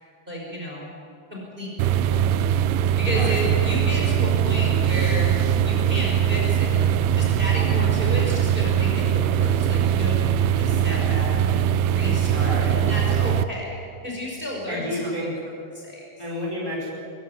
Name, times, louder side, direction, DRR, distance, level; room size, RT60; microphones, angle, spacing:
voice 1, 0.3-0.8 1.3-2.3 3.0-5.3 5.6-6.8 7.1-11.3 12.0-15.1 15.7-16.0, equal, 10° right, -3 dB, 5.2 m, -32 dB
sound 1, 1.8-13.4, right 9 dB, 80° right, 2.6 m, -21 dB
voice 2, 3.1-3.5 12.3-12.8 14.7-15.3 16.2-16.9, equal, 5° left, -3 dB, 5.0 m, -30 dB
22.5 x 16.5 x 9.5 m, 2.6 s
omnidirectional pair, 4.6 m